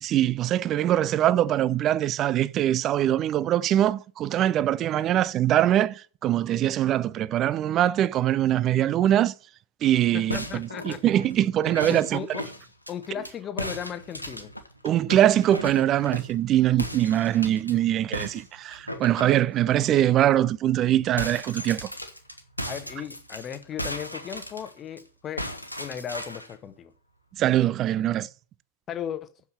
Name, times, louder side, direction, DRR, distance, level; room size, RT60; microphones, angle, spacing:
voice 1, 0.0-9.3 9.8-12.4 14.8-21.9 27.4-28.3, right 12 dB, 30° right, 0.5 m, -23 dB
voice 2, 10.1-11.0 11.9-12.5 12.9-14.5 22.7-25.5 25.8-26.9 28.9-29.3, left 8 dB, 30° left, 1.0 m, -36 dB
sound 1, 10.3-13.3 13.6-16.4 16.8-17.7 18.1-19.9 20.3-20.4 20.7-25.0 25.4-26.5, equal, 90° left, 1.2 m, -36 dB
8.0 x 7.2 x 7.0 m
figure-of-eight pair, 90°, 0 cm